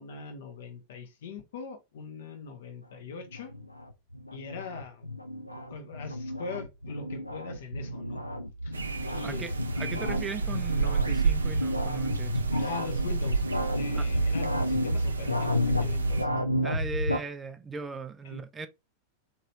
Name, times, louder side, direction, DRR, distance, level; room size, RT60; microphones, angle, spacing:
voice 1, 0.0-3.5 4.3-5.1 5.5-8.2 8.6-8.7 9.1-9.5 9.8-10.2 12.5-13.4 13.7-16.4 18.2-18.4, left 4 dB, 60° left, 0.7 m, -41 dB
sound 1, 3.2-17.2, equal, 85° left, 0.4 m, -31 dB
sound 2, 8.7-16.2, right 5 dB, 75° right, 0.4 m, -32 dB
voice 2, 9.2-12.4 13.9-14.1 16.6-18.7, right 4 dB, 15° right, 0.4 m, -38 dB
3.0 x 2.8 x 2.8 m
figure-of-eight pair, 90°, 0 cm